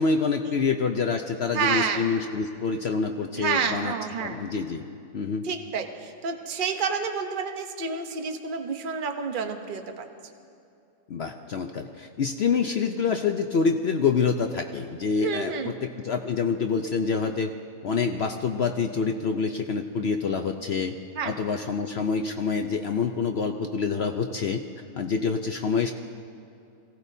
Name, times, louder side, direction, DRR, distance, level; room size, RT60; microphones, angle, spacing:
voice 1, 0.0-3.9 4.2-4.9 5.1-5.5 11.1-17.5 17.8-21.0 21.2-24.6 24.9-25.9, left 5 dB, 60° left, 5 dB, 0.8 m, -26 dB
voice 2, 1.5-2.1 3.4-4.4 5.4-10.1 15.2-15.7 21.2-21.3, right 6 dB, 40° right, 5 dB, 1.0 m, -29 dB
24.0 x 17.0 x 2.7 m, 2.6 s
omnidirectional pair, 1.5 m